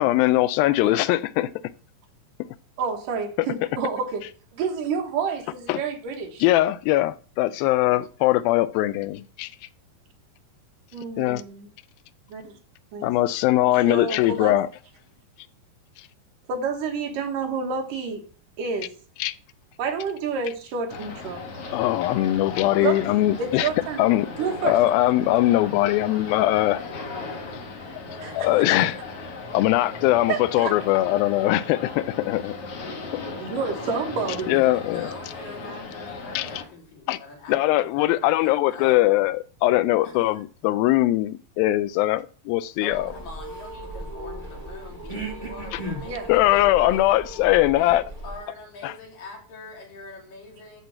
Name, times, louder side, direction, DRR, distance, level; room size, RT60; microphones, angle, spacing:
voice 1, 0.0-1.5 5.7-5.8 6.4-9.5 11.2-11.4 13.0-14.7 19.2-19.3 21.7-23.7 24.0-24.3 24.6-26.8 28.3-29.0 29.5-32.6 33.1-33.3 34.5-35.0 36.4-36.5 37.1-37.2 37.5-43.1 45.7-45.8 46.3-48.0 48.8-48.9, left 15 dB, 85° left, 2.4 m, -21 dB
voice 2, 2.8-6.4 10.9-11.7 12.3-12.6 12.9-13.1 13.9-14.6 16.5-18.2 18.6-18.9 19.8-21.4 22.8-24.0 24.4-24.8 28.2-28.5 30.3-30.7 33.4-34.6 46.0-46.3, right 5 dB, 70° right, 2.9 m, -29 dB
sound 1, 20.9-36.6, left 3 dB, 50° left, 2.1 m, -37 dB
voice 3, 34.5-39.1 40.0-40.4 42.8-47.2 47.8-50.8, left 2 dB, 70° left, 4.5 m, -43 dB
sound 2, 42.5-48.6, right 1 dB, 10° left, 0.8 m, -42 dB
sound 3, 42.9-48.4, right 1 dB, 15° right, 2.5 m, -37 dB
11.0 x 4.6 x 7.6 m
omnidirectional pair, 4.1 m